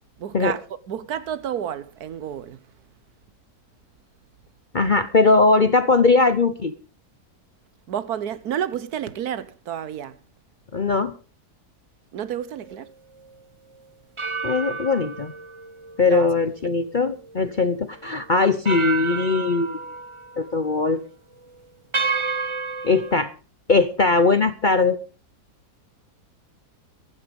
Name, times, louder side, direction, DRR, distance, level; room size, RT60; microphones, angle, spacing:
voice 1, 0.2-0.6 0.9-2.6 7.9-10.2 12.1-12.9 16.0-16.3, right 9 dB, 70° right, 1.4 m, -30 dB
voice 2, 4.7-6.7 10.7-11.1 14.4-15.3 16.0-19.8 20.4-21.0 22.8-23.3 23.7-25.0, left 3 dB, 40° left, 0.7 m, -20 dB
sound 1, 12.6-12.9 14.2-17.6 18.0-18.1 18.6-20.5 20.8-21.1 21.9-23.2, right 4 dB, 25° right, 0.8 m, -30 dB
15.5 x 12.0 x 5.2 m
omnidirectional pair, 1.7 m